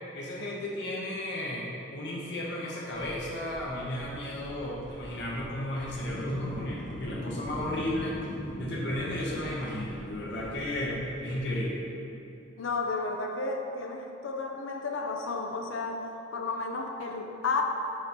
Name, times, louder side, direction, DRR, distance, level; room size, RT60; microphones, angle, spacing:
voice 1, 0.1-8.2 8.6-11.9, left 1 dB, 60° left, -5 dB, 0.9 m, -34 dB
sound 1, 2.9-11.4, equal, 25° left, 1.2 m, -41 dB
voice 2, 12.6-17.6, left 3 dB, 85° left, 3 dB, 0.5 m, -32 dB
6.3 x 3.0 x 5.2 m, 2.7 s
head